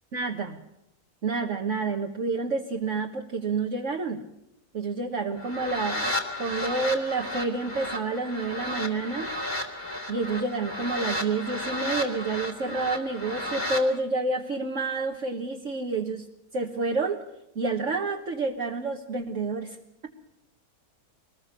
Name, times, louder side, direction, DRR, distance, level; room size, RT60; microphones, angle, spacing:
voice 1, 0.1-0.6 1.2-4.2 4.7-6.1 6.4-9.3 10.1-16.3 16.5-17.2 17.5-19.8, right 3 dB, 50° right, 2 dB, 1.7 m, -29 dB
sound 1, 5.4-13.8, left 1 dB, 25° left, 2.8 m, -33 dB
24.0 x 20.0 x 6.8 m, 0.84 s
omnidirectional pair, 1.6 m